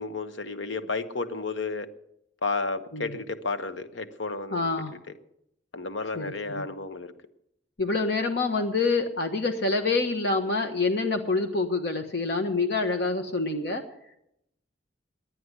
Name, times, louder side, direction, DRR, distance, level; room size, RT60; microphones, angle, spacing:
voice 1, 0.0-1.9 2.4-4.6 5.7-7.1, left 3 dB, 75° left, 11 dB, 1.0 m, -32 dB
voice 2, 4.5-4.9 6.1-6.7 7.8-13.8, left 3 dB, 55° left, 4 dB, 1.0 m, -26 dB
11.0 x 9.5 x 9.4 m, 0.78 s
head